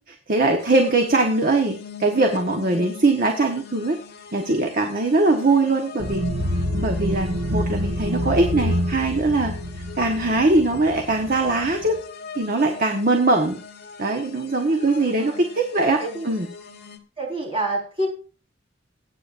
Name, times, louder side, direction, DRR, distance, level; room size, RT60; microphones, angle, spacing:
voice 1, 0.1-4.0 4.3-6.2 6.7-9.5 10.0-12.0 12.3-13.6 14.0-16.0 16.2-16.5, right 2 dB, 45° right, 3 dB, 1.2 m, -21 dB
sound 1, 0.6-17.0, left 5 dB, 55° left, 1.4 m, -41 dB
sound 2, 6.0-12.0, equal, 85° right, 1.4 m, -27 dB
voice 2, 14.9-15.4 16.0-16.3 17.2-18.1, right 1 dB, 30° right, 0 dB, 4.6 m, -28 dB
21.0 x 8.9 x 2.6 m, 0.36 s
head